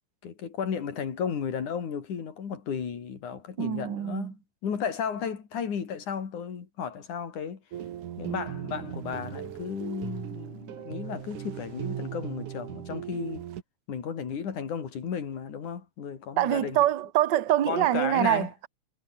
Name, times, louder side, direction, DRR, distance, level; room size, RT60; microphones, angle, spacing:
voice 1, 0.2-7.6 8.2-13.4 13.9-16.8 17.7-18.5, left 7 dB, 80° left, 4.6 m, -34 dB
voice 2, 3.6-4.3 16.4-18.7, right 12 dB, 50° right, 1.4 m, -25 dB
sound 1, 7.7-13.6, right 10 dB, 85° right, 3.1 m, -38 dB
omnidirectional pair, 3.5 m